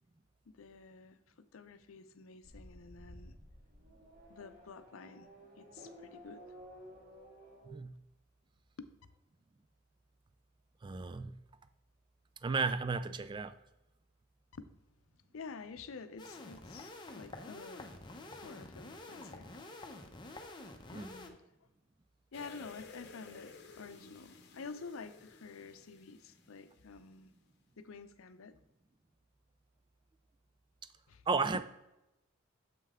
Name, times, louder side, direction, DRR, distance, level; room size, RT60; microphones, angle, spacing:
voice 1, 0.5-3.4 4.3-5.3 5.6-6.4 8.8-8.9 14.5-14.7 15.3-17.9 18.3-19.6 20.9-21.4 22.3-27.3 27.8-28.6 31.1-31.3, left 4 dB, 85° left, 0.6 m, -50 dB
Race car auto racing / Accelerating revving vroom, 2.4-7.7, equal, 40° right, 2.1 m, -54 dB
voice 2, 10.8-11.3 12.4-13.6 20.9-21.1 31.3-31.6, right 4 dB, 25° right, 0.3 m, -33 dB
sound 1, 16.2-21.3, left 2 dB, 20° left, 0.7 m, -48 dB
sound 2, 22.3-27.2 27.5-27.6, left 4 dB, 55° left, 0.8 m, -55 dB
7.4 x 5.5 x 3.6 m
head